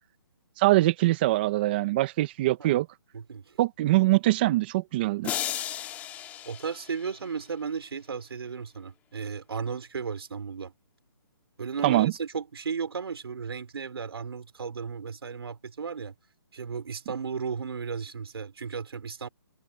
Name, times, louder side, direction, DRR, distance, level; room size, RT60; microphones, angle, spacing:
voice 1, 0.6-2.9 3.6-5.3 11.8-12.1, right 17 dB, 25° right, 1.0 m, -23 dB
voice 2, 3.1-3.6 6.4-10.7 11.6-16.1 16.5-19.3, right 6 dB, 70° right, 4.8 m, -34 dB
sound 1, 5.2-7.5, left 12 dB, 10° left, 1.8 m, -35 dB
hypercardioid pair, 165°, 14 cm